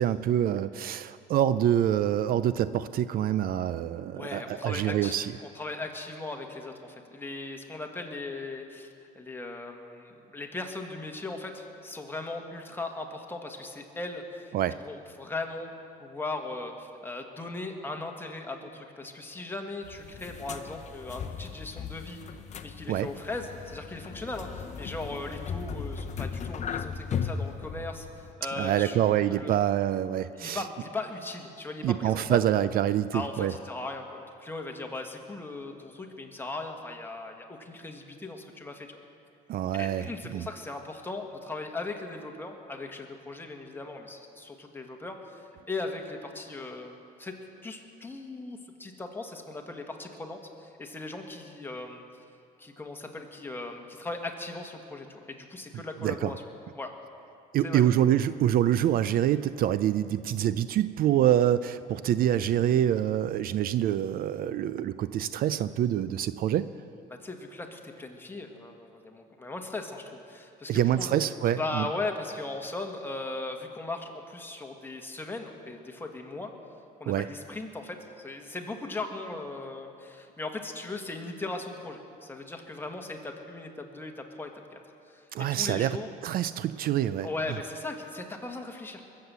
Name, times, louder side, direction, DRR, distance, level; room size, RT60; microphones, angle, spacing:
voice 1, 0.0-5.3 14.5-14.8 22.9-23.1 28.6-30.6 31.8-33.5 39.5-40.5 55.7-56.3 57.5-66.7 70.7-71.9 77.1-77.2 85.3-86.0 86.2-87.3, right 11 dB, 60° right, 14 dB, 0.4 m, -26 dB
voice 2, 4.1-14.5 14.8-15.7 16.0-22.2 22.6-29.6 30.3-32.4 33.1-39.0 39.7-47.3 47.6-52.0 52.6-56.4 56.7-56.9 57.6-57.8 67.1-71.2 71.4-76.5 77.0-84.8 85.1-86.1 87.2-89.0, left 2 dB, 10° left, 2 dB, 1.6 m, -38 dB
minsk hotel liftzurestaurant, 19.8-28.3, left 6 dB, 45° left, 0.8 m, -37 dB
22.0 x 7.8 x 6.9 m, 2.6 s
cardioid pair, 110°, 17 cm